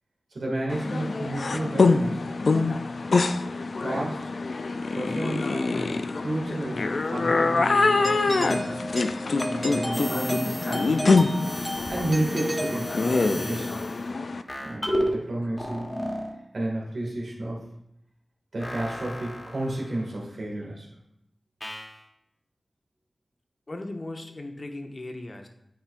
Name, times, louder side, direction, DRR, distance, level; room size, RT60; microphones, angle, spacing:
voice 1, 0.3-2.2 3.8-4.3 4.9-8.9 9.5-11.3 11.9-13.8 14.6-15.9 16.5-17.6 18.5-20.9, right 1 dB, 75° right, -3 dB, 2.0 m, -32 dB
sound 1, 0.7-14.4, left 3 dB, 70° left, 0.3 m, -25 dB
Doorbell, 8.0-13.5, equal, 10° right, 0.9 m, -33 dB
sound 2, 9.9-11.0 11.2-14.0 14.5-15.2 15.6-16.3 18.6-20.1 21.6-22.0, equal, 30° left, 1.2 m, -34 dB
voice 2, 23.7-25.5, left 2 dB, 50° left, 4 dB, 0.8 m, -37 dB
9.0 x 4.4 x 2.5 m, 0.79 s
cardioid pair, 40°, 0 cm